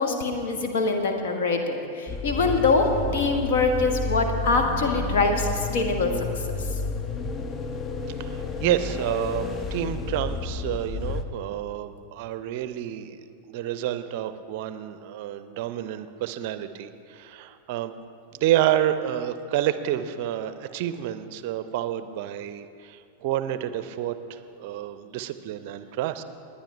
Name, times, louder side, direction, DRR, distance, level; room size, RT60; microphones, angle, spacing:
voice 1, 0.0-6.2, left 3 dB, 55° left, 4 dB, 1.4 m, -24 dB
sound 1, 2.1-11.2, left 4 dB, 25° left, 0.7 m, -31 dB
voice 2, 8.2-17.9 18.3-26.2, right 12 dB, 50° right, 12 dB, 0.5 m, -29 dB
20.0 x 10.0 x 3.3 m, 2.4 s
figure-of-eight pair, 90°, 0 cm